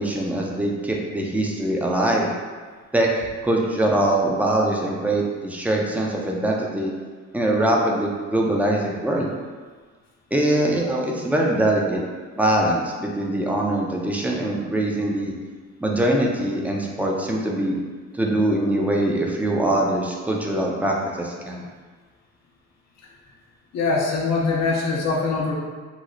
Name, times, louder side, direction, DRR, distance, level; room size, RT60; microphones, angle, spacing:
voice 1, 0.0-2.3 2.9-6.9 7.3-9.3 10.3-12.0 12.4-15.3 15.8-17.8 18.2-21.7, right 1 dB, 5° right, -1 dB, 0.5 m, -22 dB
voice 2, 23.7-25.5, left 4 dB, 60° left, -3 dB, 0.6 m, -22 dB
3.1 x 2.0 x 3.7 m, 1.5 s
cardioid pair, 90°, 30 cm